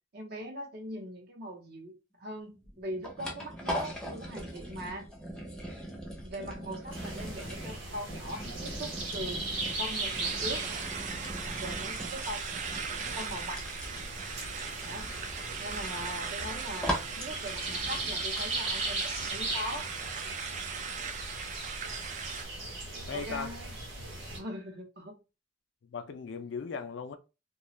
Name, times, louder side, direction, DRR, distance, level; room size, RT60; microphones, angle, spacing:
voice 1, 0.1-1.9 2.2-5.1 6.2-9.4 9.8-10.6 11.6-13.6 14.8-15.1 15.6-19.9 23.1-23.7 24.3-25.2, equal, 55° right, 0.7 m, -41 dB
sound 1, 2.5-18.8, equal, 5° left, 0.6 m, -41 dB
sound 2, 6.9-24.4, right 2 dB, 90° right, 0.9 m, -38 dB
sound 3, 9.4-22.4, right 6 dB, 40° right, 0.3 m, -39 dB
voice 2, 23.1-23.5 25.8-27.2, left 5 dB, 65° left, 0.4 m, -38 dB
2.4 x 2.2 x 3.0 m
head